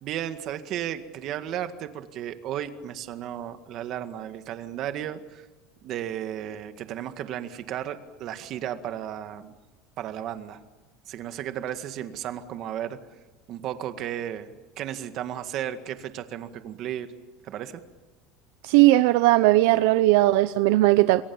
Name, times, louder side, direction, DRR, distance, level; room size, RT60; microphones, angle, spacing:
voice 1, 0.0-5.5 5.8-9.5 10.0-10.6 11.1-13.0 13.5-17.1 17.4-17.8, right 11 dB, 40° right, 9 dB, 1.9 m, -34 dB
voice 2, 18.6-21.2, right 17 dB, 70° right, 13 dB, 0.7 m, -18 dB
28.5 x 22.0 x 7.2 m, 1.2 s
cardioid pair, 170°, 0 cm